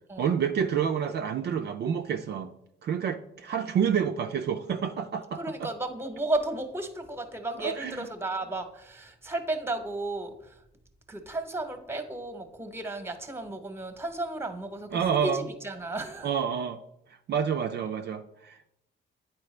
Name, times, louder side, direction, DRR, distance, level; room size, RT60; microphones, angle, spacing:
voice 1, 0.2-2.5 2.8-5.7 7.6-8.1 14.9-15.4 16.2-16.8 17.3-18.7, right 7 dB, 55° right, 0.4 m, -28 dB
voice 2, 5.3-10.6 11.1-16.3, right 2 dB, 10° right, 1.0 m, -34 dB
9.3 x 4.4 x 3.2 m
cardioid pair, 90°, 20 cm